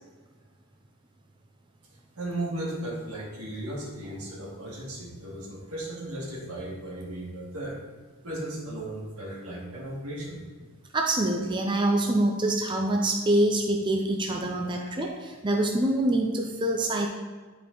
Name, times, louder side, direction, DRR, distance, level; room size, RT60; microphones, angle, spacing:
voice 1, 2.2-7.8 8.2-10.4 14.7-14.9, right 1 dB, 90° right, -4 dB, 2.2 m, -36 dB
voice 2, 10.9-17.1, right 1 dB, 20° right, 2 dB, 0.5 m, -25 dB
10.5 x 4.6 x 3.9 m, 1.4 s
head